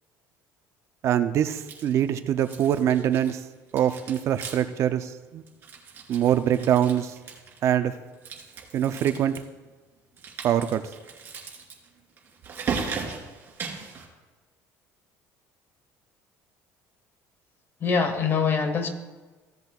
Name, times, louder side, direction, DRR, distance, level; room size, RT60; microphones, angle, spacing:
voice 1, 1.0-3.4 3.7-5.4 6.1-7.1 7.6-7.9 8.7-9.4 10.4-10.8, right 10 dB, 50° right, 10 dB, 0.5 m, -24 dB
sound 1, 1.4-2.1 2.4-3.4 3.7-4.8 5.1-5.2 5.5-7.7 8.1-9.4 10.2-14.1, right 5 dB, 35° right, 2.4 m, -37 dB
voice 2, 17.8-18.9, left 5 dB, 35° left, 8 dB, 1.2 m, -24 dB
16.0 x 7.9 x 2.4 m, 1.3 s
cardioid pair, 125°, 6 cm